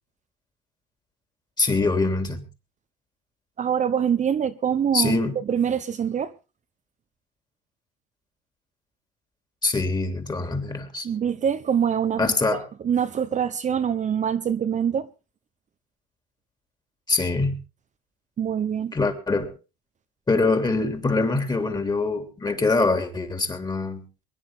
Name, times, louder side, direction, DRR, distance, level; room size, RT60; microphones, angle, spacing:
voice 1, 1.6-2.4 4.9-5.3 9.6-11.1 12.2-12.7 17.1-17.6 18.9-19.5 20.3-24.0, left 3 dB, 20° left, 3.3 m, -24 dB
voice 2, 3.6-5.2 5.5-6.3 11.0-12.2 12.5-15.1 18.4-18.9, right 8 dB, 35° right, 1.0 m, -24 dB
23.0 x 10.5 x 3.8 m
supercardioid pair, 95°, 20 cm